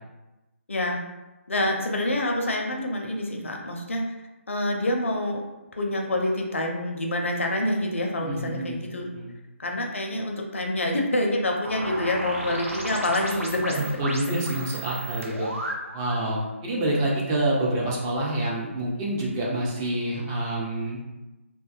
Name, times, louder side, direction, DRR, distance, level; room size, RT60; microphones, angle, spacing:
voice 1, 0.7-1.0 1.5-4.0 4.5-5.4 5.8-9.1 9.6-13.9, left 1 dB, 65° left, 1 dB, 0.5 m, -27 dB
voice 2, 8.2-8.8 9.1-9.3 13.8-15.5 15.9-21.0, right 1 dB, 15° right, -4 dB, 0.4 m, -27 dB
sound 1, 11.6-16.2, right 1 dB, 80° right, 0.6 m, -34 dB
2.5 x 2.2 x 2.4 m, 1.1 s
figure-of-eight pair, 145°, 7 cm